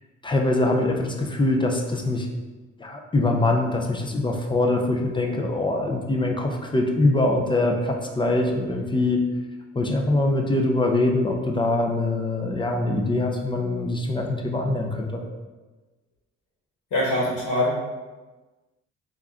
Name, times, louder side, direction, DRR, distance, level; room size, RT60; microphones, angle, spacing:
voice 1, 0.2-2.3 2.8-9.2 9.8-15.2, left 2 dB, 15° left, 2 dB, 0.5 m, -23 dB
voice 2, 16.9-17.8, left 1 dB, 75° left, -7 dB, 1.1 m, -23 dB
3.5 x 2.5 x 3.4 m, 1.2 s
cardioid pair, 90°, 30 cm